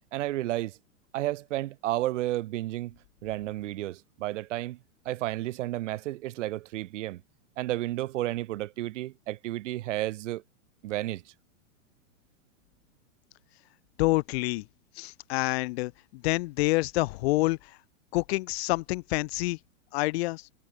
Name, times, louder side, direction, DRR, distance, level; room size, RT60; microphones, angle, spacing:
voice 1, 0.1-0.8 1.1-3.0 3.2-4.8 5.1-7.2 7.6-10.4 10.8-11.2, right 15 dB, 60° right, 2.4 m, -32 dB
voice 2, 14.0-14.6 15.0-17.6 18.1-19.6 19.9-20.4, left 22 dB, 50° left, 1.8 m, -27 dB
hypercardioid pair, 140°, 41 cm